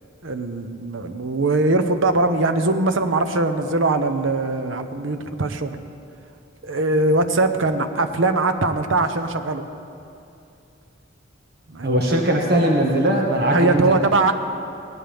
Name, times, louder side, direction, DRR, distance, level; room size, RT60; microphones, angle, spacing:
voice 1, 0.2-5.8 6.6-9.6 11.7-12.2 13.5-14.3, right 2 dB, 80° right, 8 dB, 0.9 m, -21 dB
voice 2, 11.8-14.0, right 1 dB, 55° right, 0 dB, 1.6 m, -20 dB
19.0 x 17.5 x 3.5 m, 2.6 s
head